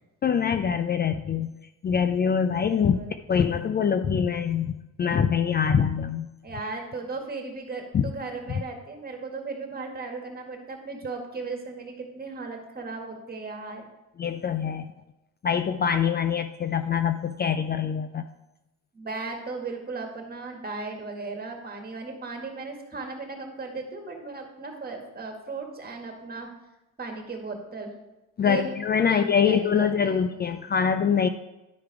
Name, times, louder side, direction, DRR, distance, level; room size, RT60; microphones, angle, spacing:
voice 1, 0.2-1.5 1.8-4.7 5.0-6.3 7.9-8.1 14.2-14.9 15.4-18.2 28.4-31.3, left 7 dB, 35° left, 10 dB, 0.4 m, -24 dB
voice 2, 2.6-3.2 6.4-13.8 18.9-26.5 27.0-27.9 28.4-28.7 29.0-30.3, right 3 dB, 30° right, 3 dB, 1.9 m, -36 dB
11.0 x 4.7 x 4.8 m, 0.98 s
cardioid pair, 90°, 30 cm